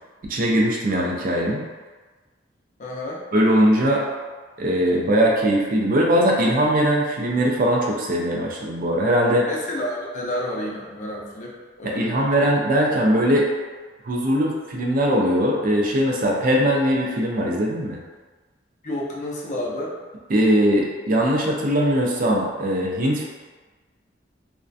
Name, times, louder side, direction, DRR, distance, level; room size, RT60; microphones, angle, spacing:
voice 1, 0.2-1.6 3.3-4.0 4.6-9.5 11.8-13.5 14.0-18.0 20.3-23.2, equal, 50° right, -1 dB, 0.4 m, -20 dB
voice 2, 2.8-3.2 4.9-5.1 9.5-12.5 18.8-19.9, left 1 dB, 40° left, -4 dB, 0.4 m, -30 dB
2.3 x 2.1 x 2.5 m, 1.3 s
head